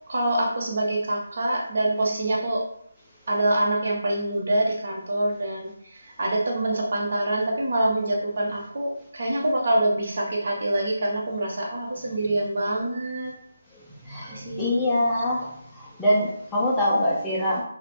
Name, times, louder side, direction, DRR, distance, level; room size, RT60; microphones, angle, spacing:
voice 1, 0.1-2.6 3.3-13.4 14.3-15.0, right 1 dB, 50° right, -1 dB, 0.8 m, -25 dB
voice 2, 14.0-17.6, left 1 dB, 5° left, -9 dB, 0.3 m, -24 dB
2.5 x 2.1 x 3.1 m, 0.72 s
figure-of-eight pair, 170°, 0 cm